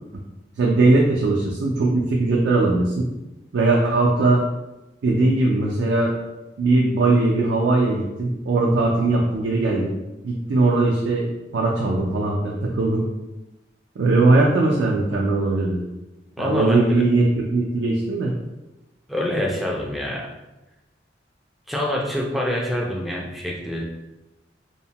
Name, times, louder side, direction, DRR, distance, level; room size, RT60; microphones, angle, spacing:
voice 1, 0.6-3.1 3.5-4.4 5.0-6.1 6.6-9.9 10.2-13.1 14.0-15.8 16.4-18.3, right 2 dB, 75° right, -2 dB, 0.4 m, -20 dB
voice 2, 16.4-17.0 19.1-20.3 21.7-23.8, left 1 dB, ahead, -1 dB, 0.3 m, -26 dB
2.8 x 2.1 x 2.8 m, 1.0 s
head